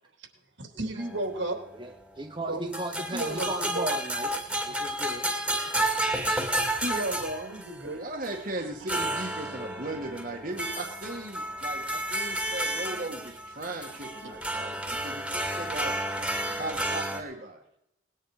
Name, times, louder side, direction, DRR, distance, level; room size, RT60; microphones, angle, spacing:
voice 1, 0.6-1.6 2.5-2.7 3.1-3.9 4.7-4.8 6.8-8.0 14.2-14.3, right 1 dB, 75° right, 4 dB, 3.5 m, -33 dB
sound 1, 1.0-1.9 2.7-7.9 8.2-8.4 8.9-17.2, right 1 dB, 5° right, 2.2 m, -31 dB
voice 2, 1.7-4.3 4.6-5.3, right 2 dB, 25° right, 2 dB, 1.2 m, -36 dB
voice 3, 7.9-15.9 16.6-17.6, right 2 dB, 45° right, 2 dB, 2.0 m, -37 dB
20.0 x 10.0 x 5.1 m, 0.79 s
head